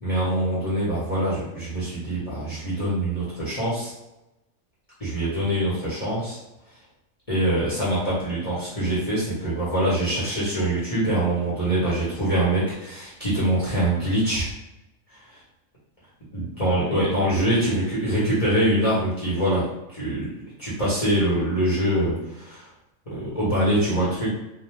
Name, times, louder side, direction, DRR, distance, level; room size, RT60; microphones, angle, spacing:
voice 1, 0.0-3.9 5.0-6.4 7.3-14.5 15.1-15.2 16.3-20.3 20.6-22.6 23.1-24.3, right 1 dB, 30° left, -9 dB, 0.8 m, -24 dB
2.6 x 2.1 x 3.1 m, 0.94 s
omnidirectional pair, 1.5 m